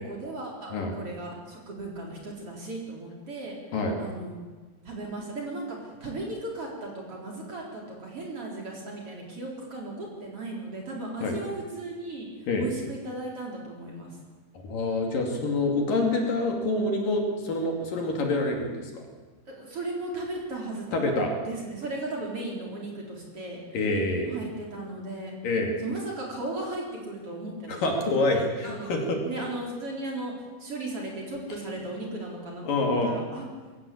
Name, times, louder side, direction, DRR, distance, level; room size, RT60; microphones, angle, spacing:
voice 1, 0.0-3.6 4.0-4.4 4.8-14.2 19.5-20.9 21.5-23.6 24.3-25.4 25.8-27.9 28.3-28.9 29.2-30.3 30.6-33.5, right 2 dB, 35° right, -1 dB, 4.6 m, -36 dB
voice 2, 14.7-19.0 20.9-21.3 23.7-24.3 25.4-25.7 27.7-29.2 32.6-33.1, left 2 dB, 60° left, 2 dB, 4.0 m, -26 dB
22.0 x 16.0 x 8.6 m, 1.3 s
omnidirectional pair, 4.6 m